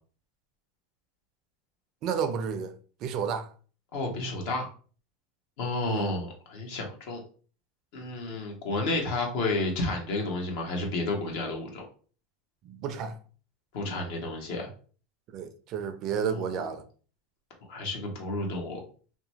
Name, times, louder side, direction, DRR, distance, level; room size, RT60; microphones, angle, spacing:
voice 1, 2.0-2.7 3.0-3.5 5.9-6.1 12.6-13.1 15.3-16.8, right 7 dB, 50° right, 0.4 m, -31 dB
voice 2, 3.9-4.7 5.6-7.2 7.9-11.9 13.7-14.7 16.1-16.6 17.7-18.8, left 2 dB, 65° left, 1.0 m, -31 dB
2.8 x 2.2 x 2.7 m
hypercardioid pair, 105°, 0 cm